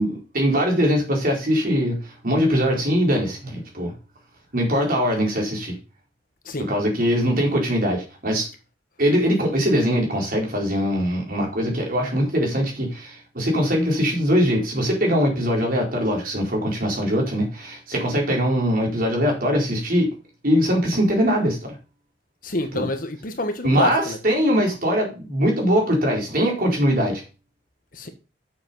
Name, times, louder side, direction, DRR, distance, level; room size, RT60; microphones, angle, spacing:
voice 1, 0.0-3.9 4.5-5.8 6.6-8.5 9.0-20.1 20.4-21.8 22.7-22.9 23.6-27.2, equal, 50° right, 4.3 m, -22 dB
voice 2, 22.4-24.2 27.9-28.1, left 2 dB, 50° left, 1.4 m, -27 dB
8.1 x 7.2 x 5.5 m
head